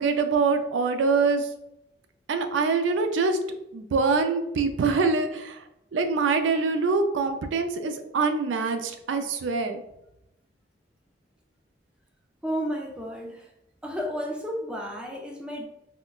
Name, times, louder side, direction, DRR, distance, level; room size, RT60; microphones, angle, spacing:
voice 1, 0.0-1.5 2.3-3.4 3.7-5.6 5.9-9.8, right 4 dB, 90° right, 7 dB, 0.4 m, -24 dB
voice 2, 12.4-13.5 13.8-15.6, equal, 5° right, -1 dB, 0.4 m, -32 dB
3.7 x 2.1 x 2.3 m, 0.85 s
head